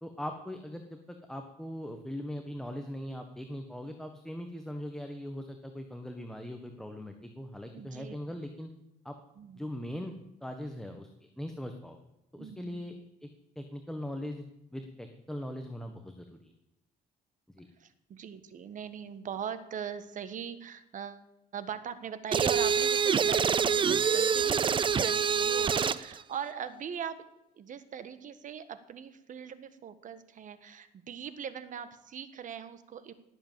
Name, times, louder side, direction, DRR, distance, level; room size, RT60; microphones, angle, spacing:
voice 1, 0.0-8.7 9.0-9.1 9.5-11.1 11.4-12.0 12.3-12.9 13.2-13.3 13.5-14.4 14.7-16.5 17.5-17.7, equal, 5° left, 5 dB, 1.4 m, -40 dB
voice 2, 7.7-8.2 9.4-9.6 12.4-13.1 17.8-21.3 21.5-27.2 27.6-33.1, right 8 dB, 50° right, 12 dB, 1.5 m, -40 dB
sound 1, 22.3-26.1, right 6 dB, 30° right, 0.6 m, -26 dB
19.0 x 8.0 x 7.5 m, 0.88 s
cardioid pair, 110°, 17 cm